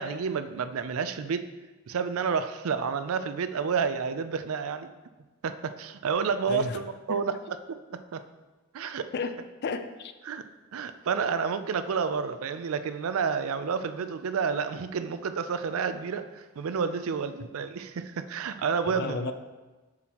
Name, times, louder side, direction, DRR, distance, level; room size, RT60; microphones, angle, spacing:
voice 1, 0.0-1.5 1.9-4.9 5.4-7.3 7.7-8.2 8.7-9.1 10.3-10.4 10.7-19.3, right 6 dB, 65° right, 11 dB, 0.4 m, -30 dB
voice 2, 6.4-6.8 7.1-7.2 9.1-9.4 9.6-10.1 18.9-19.3, left 4 dB, 45° left, 9 dB, 0.4 m, -32 dB
7.5 x 6.1 x 2.9 m, 1.2 s
head